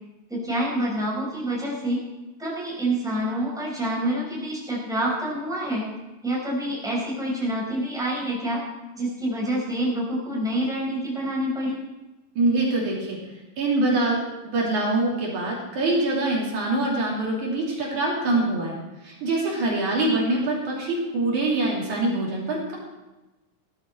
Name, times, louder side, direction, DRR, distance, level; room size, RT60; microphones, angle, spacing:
voice 1, 0.3-2.0 2.4-5.9 6.2-8.6 9.0-11.8, right 1 dB, ahead, -5 dB, 5.1 m, -27 dB
voice 2, 12.4-13.2 13.6-18.8 19.0-22.8, right 2 dB, 65° right, -4 dB, 4.2 m, -24 dB
16.5 x 13.0 x 4.5 m, 1.1 s
omnidirectional pair, 3.8 m